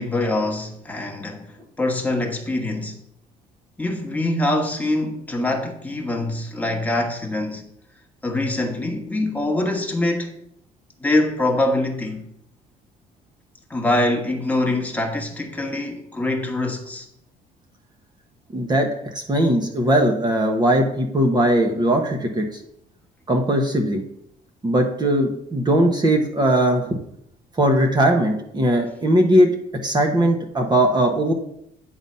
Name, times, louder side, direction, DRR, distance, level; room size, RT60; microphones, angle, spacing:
voice 1, 0.0-1.5 1.8-3.0 3.8-7.7 8.2-10.3 11.0-12.2 13.7-17.1, left 2 dB, 10° left, 1.4 m, -24 dB
voice 2, 18.5-22.6 23.3-24.0 24.6-27.0 27.6-29.5 29.8-31.3, right 1 dB, 25° right, 1.1 m, -19 dB
9.1 x 4.0 x 5.6 m
cardioid pair, 110°, 17 cm